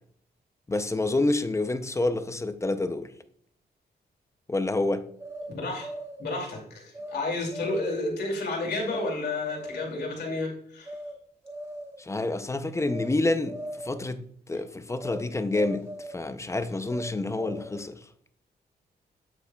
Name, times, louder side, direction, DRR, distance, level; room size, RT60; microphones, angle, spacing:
voice 1, 0.7-3.1 4.5-5.1 12.0-18.0, left 2 dB, 15° left, 0.5 m, -28 dB
sound 1, 5.2-6.3 6.9-7.2 7.5-8.1 8.9-9.1 9.5-10.0 10.8-11.1 11.4-12.1 12.8-13.1 13.4-14.1 15.0-15.2 15.5-16.3 16.9-17.9, right 1 dB, 15° right, 1.2 m, -40 dB
voice 2, 5.5-5.9 6.2-11.0, left 2 dB, 80° left, 2.4 m, -31 dB
8.5 x 8.0 x 2.3 m
wide cardioid pair, 120°, 17 cm